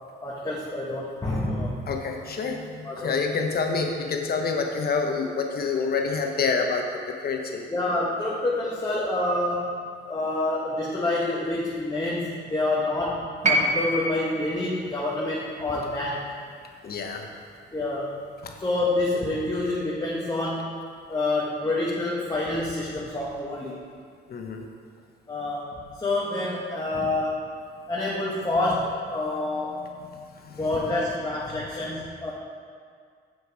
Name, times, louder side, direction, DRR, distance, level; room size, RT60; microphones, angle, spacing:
voice 1, 0.2-1.8 2.8-3.1 7.7-13.2 13.5-16.2 17.7-18.2 18.6-20.8 21.1-23.9 25.3-25.7 26.0-27.5 27.9-29.9 30.6-32.3, left 2 dB, 20° left, -6 dB, 1.3 m, -27 dB
voice 2, 1.9-7.6 16.8-17.3 18.4-18.5 24.3-24.6 29.8-31.0 31.5-31.6, left 4 dB, 50° left, 3 dB, 1.1 m, -28 dB
sound 1, 13.4-17.6 18.8-18.9, right 1 dB, 35° right, 1.0 m, -29 dB
7.1 x 6.3 x 4.8 m, 2.1 s
cardioid pair, 90°, 20 cm